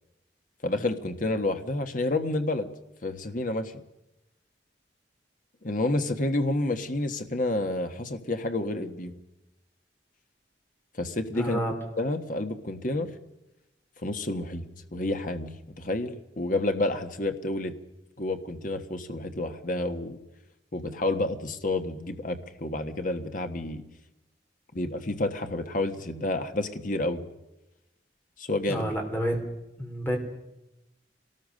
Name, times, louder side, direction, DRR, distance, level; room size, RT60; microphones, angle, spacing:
voice 1, 0.6-2.7 3.0-3.7 5.6-9.1 11.0-11.6 12.0-13.1 14.0-14.6 14.9-15.5 15.8-17.7 18.2-20.2 20.7-23.8 24.7-27.2 28.4-28.9, left 2 dB, 45° left, 7 dB, 1.4 m, -29 dB
voice 2, 11.4-11.7 28.7-29.4 29.8-30.2, equal, 10° left, 2 dB, 3.8 m, -29 dB
25.0 x 18.5 x 6.5 m, 0.94 s
head